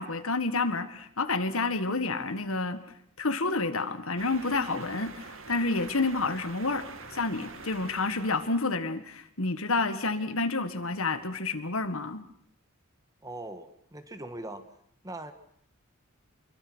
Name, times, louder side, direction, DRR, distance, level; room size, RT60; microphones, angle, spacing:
voice 1, 0.0-2.8 3.2-6.9 7.1-12.2, left 3 dB, 70° left, 10 dB, 1.8 m, -29 dB
sound 1, 4.2-8.8, right 4 dB, 65° right, 2.3 m, -45 dB
voice 2, 13.2-14.6 15.0-15.3, right 2 dB, 15° right, 9 dB, 1.6 m, -40 dB
26.5 x 23.0 x 6.3 m, 0.66 s
head